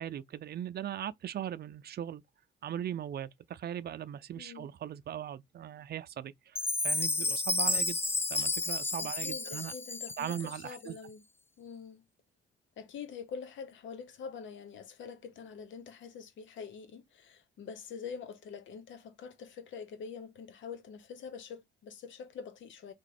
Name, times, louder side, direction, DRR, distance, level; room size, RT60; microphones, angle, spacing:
voice 1, 0.0-2.2 2.6-6.6 6.8-8.0 8.3-9.7 10.2-11.0, right 10 dB, 55° right, 0.6 m, -39 dB
voice 2, 4.3-4.7 9.0-11.2 11.6-12.0 12.8-22.9, left 6 dB, 70° left, 1.1 m, -45 dB
Chime, 6.6-10.8, left 2 dB, 10° left, 0.3 m, -32 dB
3.5 x 3.1 x 4.2 m
cardioid pair, 90°, 20 cm